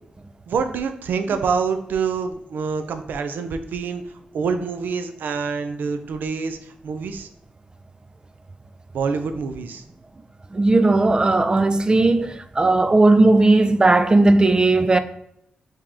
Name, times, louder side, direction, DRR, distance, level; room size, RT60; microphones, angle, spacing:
voice 1, 0.5-4.0 4.3-7.3 8.9-9.8, right 5 dB, 80° right, 0.4 m, -26 dB
voice 2, 10.5-15.0, right 2 dB, 25° right, 0.4 m, -16 dB
4.8 x 2.9 x 3.5 m
cardioid pair, 60°, 3 cm